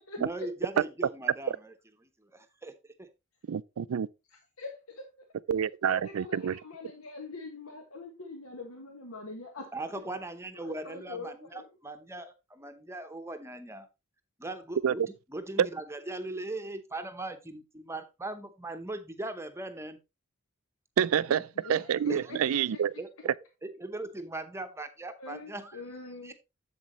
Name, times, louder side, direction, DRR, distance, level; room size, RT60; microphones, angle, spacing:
voice 1, 0.2-1.7 2.0-2.7 3.0-3.1 9.7-13.9 14.4-15.0 15.3-20.0 21.3-21.4 22.1-22.2 23.0-23.1 23.6-25.8 26.2-26.3, right 2 dB, 15° right, 0.8 m, -39 dB
voice 2, 3.5-4.1 5.5-6.6 14.8-14.9 15.6-15.7 21.0-22.9, right 8 dB, 80° right, 0.4 m, -27 dB
voice 3, 4.3-5.1 5.8-9.7 10.5-11.7 21.5-22.4 22.7-22.8 25.2-26.3, left 3 dB, 85° left, 1.4 m, -43 dB
7.9 x 7.3 x 3.0 m
head